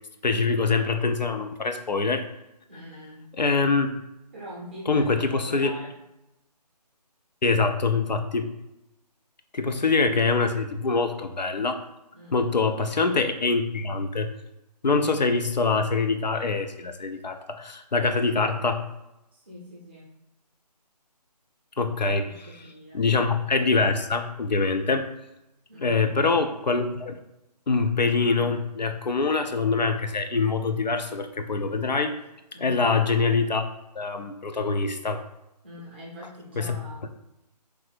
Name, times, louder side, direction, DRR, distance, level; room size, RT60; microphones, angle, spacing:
voice 1, 0.2-2.3 3.4-3.9 4.9-5.7 7.4-8.5 9.5-11.8 12.3-14.3 14.8-18.9 21.8-22.3 22.9-25.1 25.8-27.1 27.7-32.2 32.6-33.7 34.0-35.2 36.6-36.8, left 4 dB, 90° left, 7 dB, 0.4 m, -24 dB
voice 2, 2.7-3.3 4.3-5.9 12.1-12.5 19.3-20.2 21.9-23.0 25.7-26.0 32.5-32.9 35.6-37.1, equal, 15° right, -6 dB, 0.5 m, -43 dB
3.2 x 2.5 x 3.2 m, 0.90 s
figure-of-eight pair, 150°, 21 cm